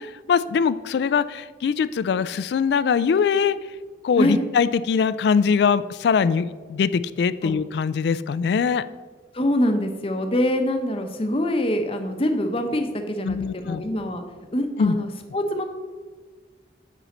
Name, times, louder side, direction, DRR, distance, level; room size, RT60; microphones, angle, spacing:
voice 1, 0.3-3.6 4.0-8.8 13.2-13.8 14.8-15.0, left 6 dB, 65° left, 15 dB, 0.3 m, -22 dB
voice 2, 9.3-14.2 14.5-15.7, left 1 dB, 30° left, 5 dB, 0.8 m, -24 dB
8.3 x 5.5 x 4.3 m, 1.4 s
head